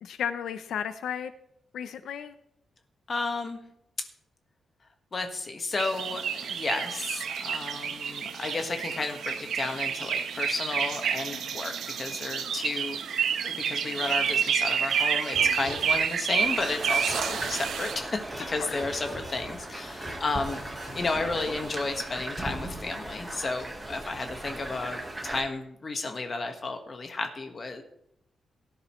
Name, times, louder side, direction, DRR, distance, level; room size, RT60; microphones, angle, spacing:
voice 1, 0.0-1.3 1.7-2.3 11.3-11.6 15.4-15.7 18.6-18.7, left 8 dB, 85° left, 11 dB, 0.6 m, -34 dB
voice 2, 3.1-3.6 5.1-13.0 13.4-20.6 20.9-27.8, left 3 dB, 30° left, 5 dB, 1.4 m, -32 dB
sound 1, 5.8-18.0, right 7 dB, 75° right, 1.0 m, -29 dB
sound 2, 14.9-16.2 16.5-17.9 18.2-18.5 18.7-19.6 19.9-20.2 20.4-21.7, equal, 5° left, 5.0 m, -42 dB
Rain on roof, 16.4-25.4, right 1 dB, 15° right, 1.3 m, -38 dB
17.0 x 10.5 x 3.1 m, 0.75 s
wide cardioid pair, 175°, 0 cm